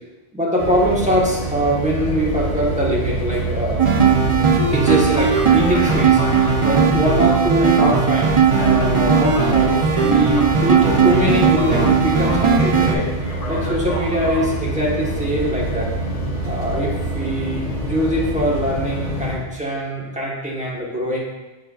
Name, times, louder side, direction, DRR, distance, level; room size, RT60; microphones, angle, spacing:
voice 1, 0.3-3.8 4.6-6.2 6.6-13.1 13.5-15.9 16.4-21.2, equal, 5° right, -5 dB, 1.2 m, -22 dB
sound 1, 0.6-19.4, right 1 dB, 40° left, 1.1 m, -26 dB
sound 2, 3.8-12.9, right 6 dB, 40° right, 0.5 m, -17 dB
7.3 x 5.5 x 2.4 m, 1.1 s
omnidirectional pair, 1.0 m